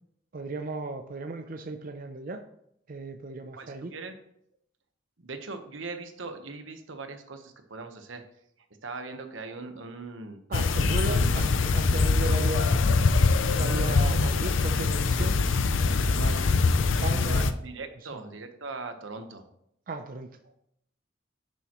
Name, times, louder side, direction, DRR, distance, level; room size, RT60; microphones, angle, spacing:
voice 1, 0.3-2.4 2.9-3.9 10.5-12.8 13.5-15.4 15.8-16.2 16.8-17.5 19.9-20.3, right 3 dB, 45° right, 7 dB, 0.5 m, -36 dB
voice 2, 3.6-4.2 5.2-8.2 8.8-10.4 10.8-11.2 16.1-16.6 17.2-19.5 20.4-20.5, right 3 dB, 90° right, 7 dB, 1.1 m, -40 dB
sound 1, 10.5-17.5, left 4 dB, 85° left, 0.5 m, -23 dB
10.5 x 6.9 x 3.0 m, 0.74 s
head